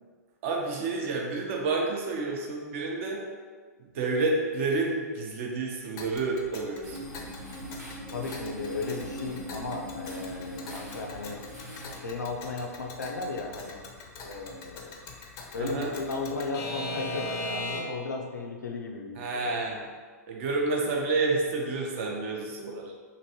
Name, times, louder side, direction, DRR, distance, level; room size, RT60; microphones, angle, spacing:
voice 1, 0.4-3.2 3.8-7.1 15.6-15.9 19.2-19.9 20.3-22.9, right 3 dB, 50° right, 0 dB, 0.6 m, -29 dB
Alarm / Clock, 6.0-18.1, left 2 dB, 35° left, 0.5 m, -41 dB
sound 1, 6.8-12.0, right 1 dB, 85° right, 1.1 m, -40 dB
voice 2, 8.1-11.4 12.0-13.8 14.2-14.9 15.5-19.5, left 3 dB, 85° left, 1 dB, 0.5 m, -35 dB
3.0 x 2.6 x 2.8 m, 1.5 s
figure-of-eight pair, 110°, 9 cm